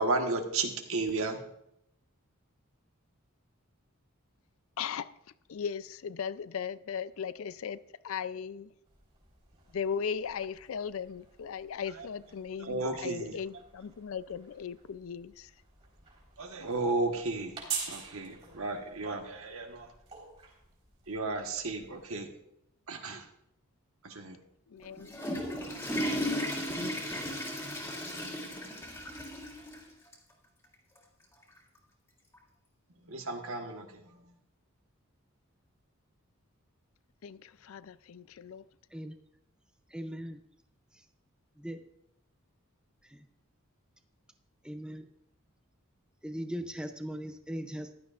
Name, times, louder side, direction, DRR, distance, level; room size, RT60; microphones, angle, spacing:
voice 1, 0.0-1.4 12.6-13.3 16.4-17.6 17.9-19.9 21.1-22.3 22.9-23.3 24.0-24.4 25.1-25.4 33.1-34.0, right 3 dB, 70° right, 1.3 m, -33 dB
voice 2, 4.8-5.1 5.5-8.7 9.7-15.5 24.7-25.2 37.2-38.6, left 7 dB, 70° left, 0.4 m, -37 dB
sound 1, 8.9-22.3, right 6 dB, 30° right, 3.9 m, -47 dB
Water / Toilet flush, 24.8-29.8 30.1-30.2 31.0-31.1 32.3-32.4, equal, 10° left, 2.1 m, -35 dB
voice 3, 39.9-40.4 40.9-41.1 41.6-41.8 43.0-43.2 44.6-45.1 46.2-47.9, equal, 5° right, 0.5 m, -39 dB
15.0 x 11.5 x 2.5 m
head